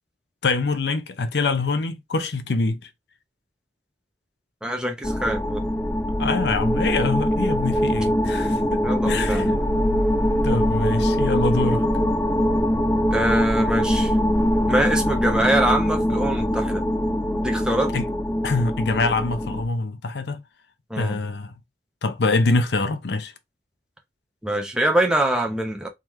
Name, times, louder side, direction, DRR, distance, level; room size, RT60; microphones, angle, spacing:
voice 1, 0.4-2.8 6.2-9.5 10.4-11.9 17.9-18.1 18.4-20.4 21.0-21.5 22.0-23.3, left 3 dB, 70° left, 0.6 m, -24 dB
voice 2, 4.6-5.6 8.8-9.6 13.1-14.1 14.7-16.8 17.4-17.9 20.9-21.2 24.4-25.9, right 1 dB, 5° right, 0.9 m, -24 dB
sound 1, 5.0-19.6, equal, 15° left, 0.5 m, -22 dB
3.7 x 3.1 x 3.1 m
head